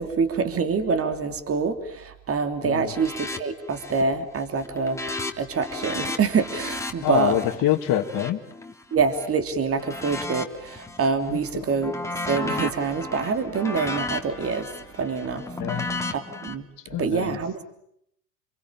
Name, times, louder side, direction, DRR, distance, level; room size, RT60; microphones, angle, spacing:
voice 1, 0.0-5.0 5.4-7.3 8.9-11.9 12.2-14.7 15.0-16.6 17.0-17.6, right 5 dB, 25° right, 9 dB, 3.2 m, -26 dB
sound 1, 2.9-3.4 3.7-4.1 4.4-9.3 9.8-11.1 11.5-16.5, left 2 dB, 5° left, 2.8 m, -34 dB
voice 2, 7.0-8.4 11.3-11.4 15.6-15.9 16.9-17.4, left 13 dB, 40° left, -1 dB, 2.3 m, -25 dB
28.0 x 23.0 x 8.9 m, 0.72 s
hypercardioid pair, 105°, 50 cm